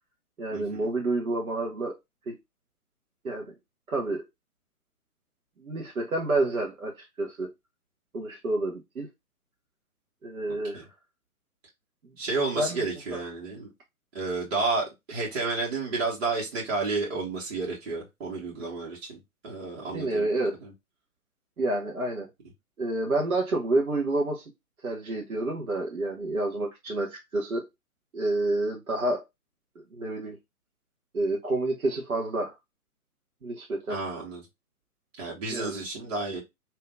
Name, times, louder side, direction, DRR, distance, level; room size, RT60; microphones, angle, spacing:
voice 1, 0.4-1.9 2.3-2.4 3.2-3.5 3.9-4.3 5.6-7.5 8.1-9.1 10.2-10.8 12.6-12.8 19.9-20.6 21.6-22.3 22.8-24.4 24.8-27.6 28.1-29.2 29.9-30.4 31.1-32.5 33.4-34.0 35.5-35.8, right 2 dB, 70° right, 1.0 m, -29 dB
voice 2, 12.2-13.7 14.1-20.3 20.6-20.7 33.9-34.4 35.2-36.4, right 3 dB, 45° right, 1.4 m, -31 dB
3.4 x 2.8 x 2.3 m
figure-of-eight pair, 130°, 44 cm